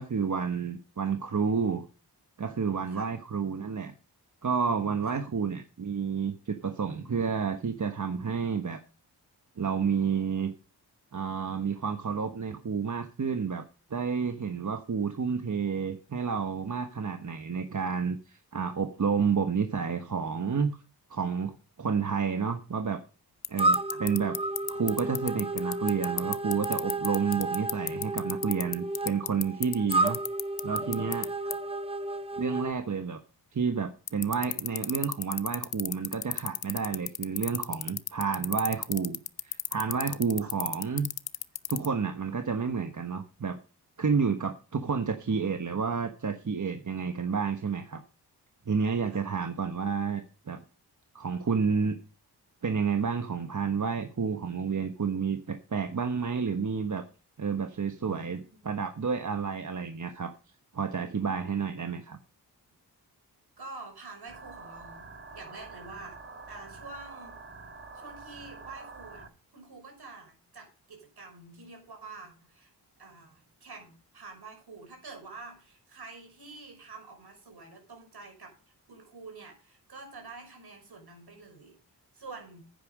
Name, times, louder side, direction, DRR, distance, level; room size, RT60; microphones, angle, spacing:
voice 1, 0.0-1.9 2.4-3.9 4.4-8.8 9.6-10.5 11.1-13.6 13.9-20.8 21.1-23.0 23.5-24.4 24.7-30.2 30.6-31.3 32.4-33.2 33.5-41.1 41.7-43.6 44.0-48.0 48.7-50.6 51.1-52.0 52.6-57.0 57.4-58.4 58.6-60.3 60.7-62.2, right 5 dB, 45° right, 7 dB, 1.3 m, -30 dB
sound 1, 23.4-31.3 31.5-31.6 34.1-41.9, left 10 dB, 65° left, 0.7 m, -30 dB
sound 2, 23.6-32.7, right 2 dB, 15° right, 0.9 m, -32 dB
voice 2, 57.9-58.9 63.6-66.2 66.5-67.4 67.9-69.3 69.5-72.7 73.0-78.6 78.9-81.8 82.1-82.6, right 3 dB, 70° right, 4 dB, 5.6 m, -47 dB
sound 3, 64.3-69.3, right 4 dB, 30° right, 1.8 m, -46 dB
9.9 x 9.3 x 5.2 m, 0.34 s
cardioid pair, 60°, 40 cm